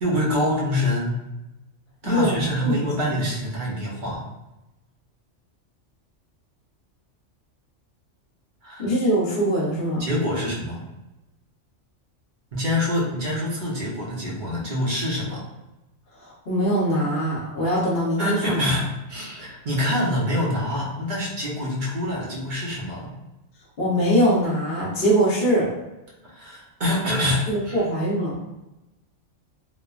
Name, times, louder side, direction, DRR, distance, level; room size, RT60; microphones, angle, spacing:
voice 1, 0.0-1.1 2.0-4.2 8.6-8.9 10.0-10.8 12.5-15.4 18.2-23.1 26.3-27.8, left 1 dB, 45° right, -5 dB, 0.8 m, -26 dB
voice 2, 2.0-3.1 8.8-10.0 16.2-18.6 23.8-25.7 27.5-28.4, equal, 50° left, -6 dB, 0.9 m, -22 dB
3.0 x 2.1 x 2.3 m, 0.98 s
omnidirectional pair, 1.3 m